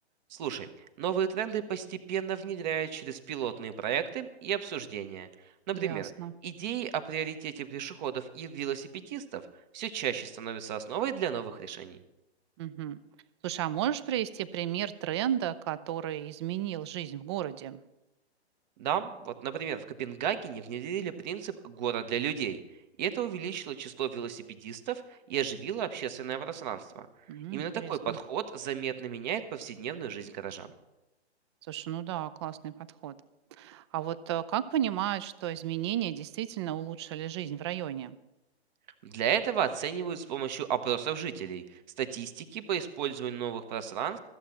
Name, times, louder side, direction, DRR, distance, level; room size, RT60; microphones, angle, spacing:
voice 1, 0.3-0.7 1.0-5.3 5.7-6.1 6.4-9.4 9.7-12.0 18.8-22.6 23.0-27.1 27.5-30.7 39.0-44.2, right 9 dB, 40° right, 10 dB, 1.1 m, -33 dB
voice 2, 5.7-6.3 12.6-13.0 13.4-17.8 27.3-28.2 31.7-32.7 33.0-33.2 33.6-38.2, right 11 dB, 25° right, 15 dB, 0.4 m, -33 dB
14.0 x 7.5 x 6.9 m, 0.97 s
hypercardioid pair, 135°, 34 cm